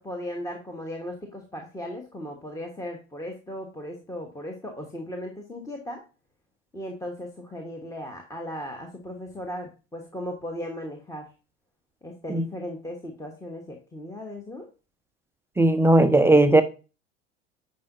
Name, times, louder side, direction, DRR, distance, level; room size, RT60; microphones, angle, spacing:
voice 1, 0.0-6.0 6.7-11.3 12.0-14.7, left 1 dB, 10° left, 1.2 m, -37 dB
voice 2, 15.6-16.6, right 2 dB, 5° right, 0.4 m, -17 dB
9.4 x 5.5 x 2.6 m
figure-of-eight pair, 80°, 38 cm